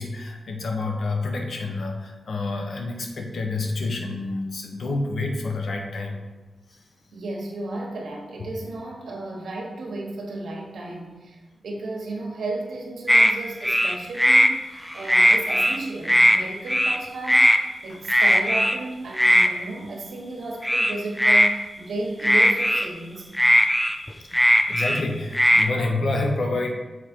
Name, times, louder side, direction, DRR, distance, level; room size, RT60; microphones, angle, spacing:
voice 1, 0.0-6.2 17.9-18.0 24.2-26.7, left 2 dB, 65° left, 2 dB, 1.0 m, -28 dB
voice 2, 7.1-17.5 17.8-23.3, right 2 dB, 75° right, 0 dB, 1.3 m, -33 dB
sound 1, 13.1-13.3 13.6-14.5 14.9-15.8 16.0-16.4 16.7-17.0 17.3-17.6 18.1-18.8 19.2-19.5 20.6-21.5 22.2-22.9 23.3-25.0 25.3-25.7, equal, 5° left, 0.4 m, -18 dB
6.6 x 4.3 x 4.5 m, 1.2 s
wide cardioid pair, 110°, 0 cm